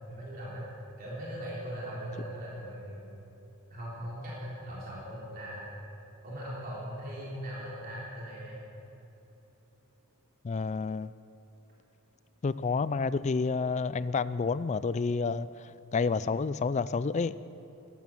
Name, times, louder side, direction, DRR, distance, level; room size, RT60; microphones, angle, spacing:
voice 1, 0.1-0.7 1.0-3.2 3.7-5.7 6.2-8.6, equal, 40° right, 3.6 m, -39 dB
voice 2, 10.4-11.1 12.4-17.4, left 4 dB, 30° left, 0.3 m, -29 dB
14.0 x 12.5 x 7.2 m
head